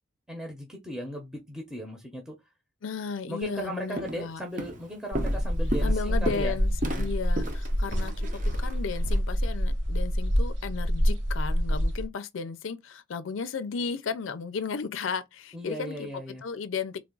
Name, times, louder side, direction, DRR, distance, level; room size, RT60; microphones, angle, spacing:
voice 1, 0.3-2.3 3.3-6.6 6.8-7.1 15.5-16.4, equal, 5° right, 0.7 m, -37 dB
voice 2, 2.8-4.4 5.8-6.7 7.0-16.1 16.4-17.0, left 5 dB, 85° left, 0.4 m, -34 dB
Walk footsteps, 3.4-3.6 4.0-4.3 4.6-9.2, right 1 dB, 40° right, 0.7 m, -35 dB
sound 1, 5.1-12.1, equal, 75° right, 1.1 m, -27 dB
3.5 x 2.4 x 3.7 m
head